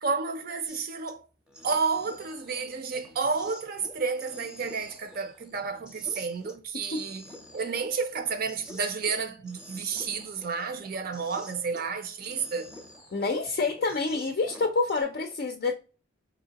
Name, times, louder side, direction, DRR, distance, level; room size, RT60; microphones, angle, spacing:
voice 1, 0.0-1.2 1.6-7.2 7.5-12.7, right 5 dB, 50° right, 0.5 m, -31 dB
sound 1, 0.7-1.1 1.5-11.9 12.2-15.0, left 1 dB, 5° right, 0.6 m, -49 dB
voice 2, 13.1-15.7, left 3 dB, 50° left, 0.4 m, -27 dB
3.7 x 2.8 x 2.8 m
head